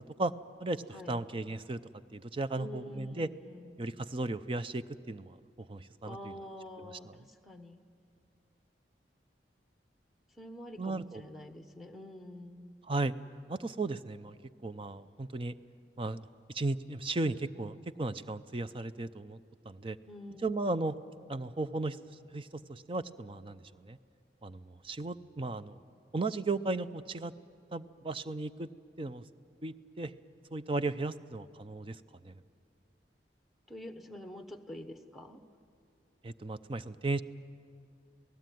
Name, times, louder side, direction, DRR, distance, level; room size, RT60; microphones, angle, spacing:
voice 1, 0.6-1.8 2.1-3.3 3.8-6.4 6.8-7.2 10.8-11.2 12.8-13.1 13.5-14.4 14.6-15.5 16.0-16.2 16.5-19.4 19.7-20.0 20.4-21.0 21.3-22.0 22.3-24.0 24.4-25.8 26.1-27.3 27.7-28.7 29.0-29.2 29.6-30.1 30.5-32.0 32.2-32.4 36.2-37.2, right 2 dB, 30° right, 12 dB, 0.6 m, -35 dB
voice 2, 2.6-3.9 6.0-7.8 10.4-12.8 20.1-20.5 33.7-35.4, left 1 dB, ahead, 7 dB, 1.2 m, -47 dB
27.5 x 18.0 x 9.3 m, 2.3 s
head